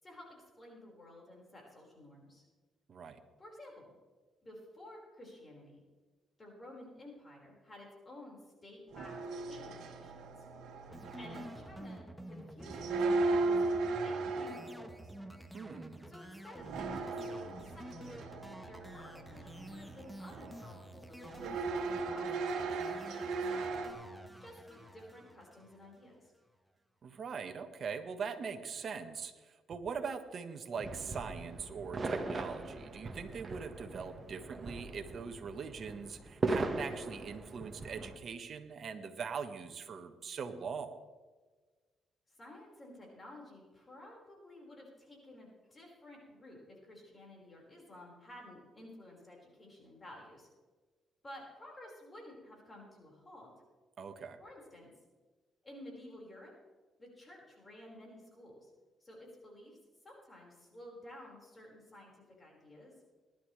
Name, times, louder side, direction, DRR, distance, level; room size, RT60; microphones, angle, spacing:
voice 1, 0.0-2.4 3.4-3.9 4.4-5.8 6.4-10.3 11.2-15.1 16.1-18.2 18.7-23.9 24.4-26.3 42.3-50.5 51.2-53.5 54.4-54.9 55.6-56.5 57.0-58.7 59.0-59.8 60.0-62.9, left 1 dB, 25° left, -2 dB, 5.0 m, -53 dB
voice 2, 2.9-3.2 15.5-16.1 27.0-41.0 54.0-54.4, right 6 dB, 55° right, 7 dB, 1.4 m, -42 dB
sound 1, 8.9-11.9 12.6-14.9 16.6-20.1 20.3-20.7 21.2-23.9, right 3 dB, 85° right, 1.8 m, -36 dB
sound 2, 10.9-26.3, equal, ahead, 1.3 m, -50 dB
sound 3, 30.8-38.2, right 3 dB, 30° right, 1.5 m, -39 dB
19.5 x 11.5 x 3.3 m, 1.3 s
cardioid pair, 90°, 0 cm